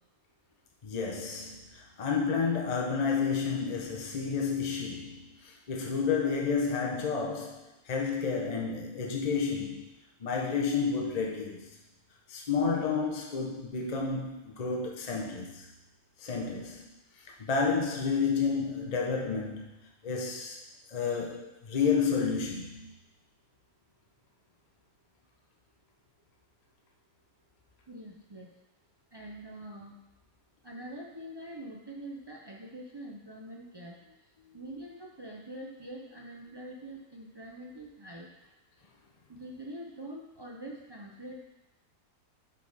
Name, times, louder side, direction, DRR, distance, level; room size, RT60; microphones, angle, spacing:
voice 1, 0.8-9.9 10.2-11.8 12.3-15.7 16.2-20.6 20.9-22.9, left 5 dB, 40° left, -1 dB, 0.6 m, -31 dB
voice 2, 27.9-28.5 29.1-30.0 30.6-33.9 34.5-38.3 39.3-41.4, right 1 dB, 45° right, -2 dB, 0.3 m, -44 dB
5.3 x 5.1 x 4.0 m, 0.92 s
omnidirectional pair, 1.5 m